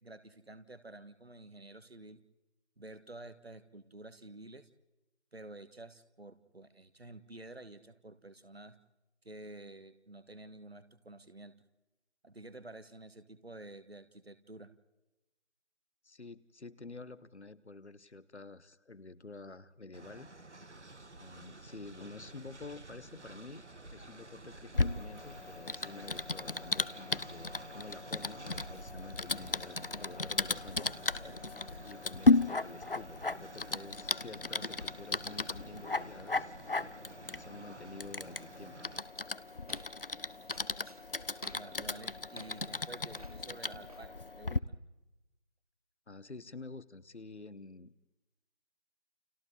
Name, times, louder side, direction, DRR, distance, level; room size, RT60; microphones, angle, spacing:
voice 1, 0.0-2.2 2.8-4.7 5.3-8.8 9.2-11.5 12.2-14.7 41.5-44.8, right 2 dB, 60° right, 12 dB, 1.6 m, -50 dB
voice 2, 16.0-20.3 21.2-23.7 23.9-31.0 31.8-36.5 37.3-38.8 46.1-47.9, left 3 dB, 75° left, 17 dB, 1.0 m, -49 dB
Train, 19.9-39.0, right 2 dB, 80° right, 1.7 m, -51 dB
Typing, 24.7-44.6, left 3 dB, 55° left, 0.6 m, -35 dB
sound 1, 38.9-44.1, right 1 dB, 35° right, 1.5 m, -57 dB
29.5 x 27.5 x 3.9 m, 1.0 s
figure-of-eight pair, 170°, 34 cm